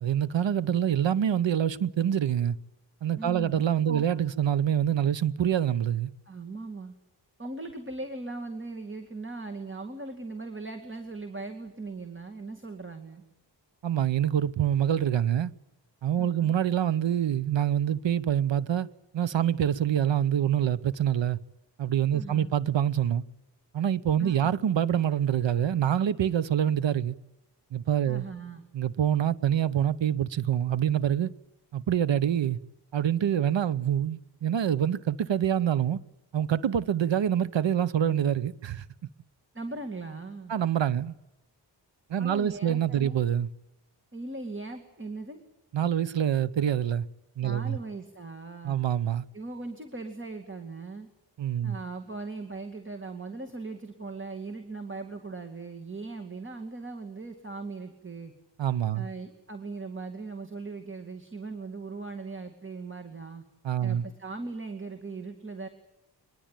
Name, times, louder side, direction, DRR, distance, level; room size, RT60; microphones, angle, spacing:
voice 1, 0.0-2.6 3.0-6.1 13.8-15.5 16.0-18.9 19.1-21.4 21.8-23.2 23.7-27.2 27.7-28.3 28.7-31.3 31.7-32.6 32.9-36.0 36.3-38.8 40.5-41.1 42.1-43.5 45.7-47.0 47.4-47.8 48.6-49.2 51.4-51.8 58.6-59.1 63.6-64.1, right 9 dB, 80° right, 0.9 m, -26 dB
voice 2, 3.2-4.0 6.3-6.9 7.4-13.2 16.2-16.5 22.1-22.5 24.2-24.5 28.1-28.6 39.5-40.5 42.2-43.2 44.1-45.4 47.4-48.9 49.3-51.1 51.6-58.3 58.9-63.4 63.8-65.7, right 3 dB, 25° right, 2.3 m, -39 dB
23.5 x 20.5 x 9.0 m
wide cardioid pair, 110°, 43 cm